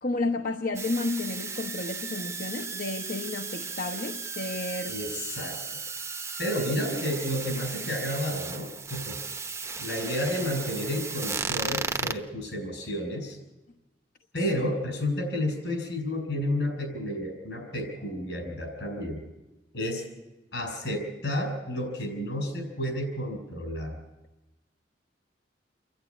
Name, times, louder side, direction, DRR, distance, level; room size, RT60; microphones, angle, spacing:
voice 1, 0.0-5.0 9.6-9.7, left 2 dB, 50° left, 4 dB, 1.1 m, -31 dB
sound 1, 0.7-12.1, right 4 dB, 15° right, 0.9 m, -35 dB
voice 2, 4.9-5.6 6.4-9.2 9.8-13.4 14.3-19.2 19.7-20.0 20.5-23.9, equal, 75° left, 4 dB, 7.1 m, -31 dB
28.5 x 11.5 x 9.8 m, 1.0 s
head